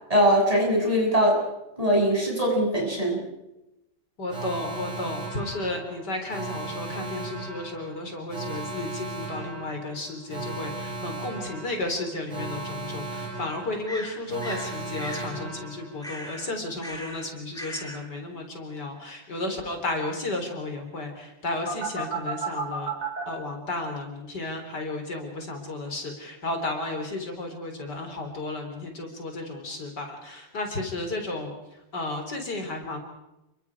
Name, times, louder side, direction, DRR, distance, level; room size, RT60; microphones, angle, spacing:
voice 1, 0.1-1.4 1.8-3.2, equal, 20° right, -1 dB, 7.0 m, -21 dB
voice 2, 4.2-22.9 23.3-33.0, left 2 dB, 60° left, 4 dB, 4.5 m, -33 dB
Alarm, 4.3-16.2 21.7-23.2, right 3 dB, 50° right, 8.1 m, -35 dB
sound 1, 11.8-11.9 13.9-14.7 15.0-15.3 16.0-16.5 16.8-17.3 17.5-18.0, equal, ahead, 5.2 m, -38 dB
29.5 x 24.0 x 4.9 m, 0.94 s
omnidirectional pair, 2.0 m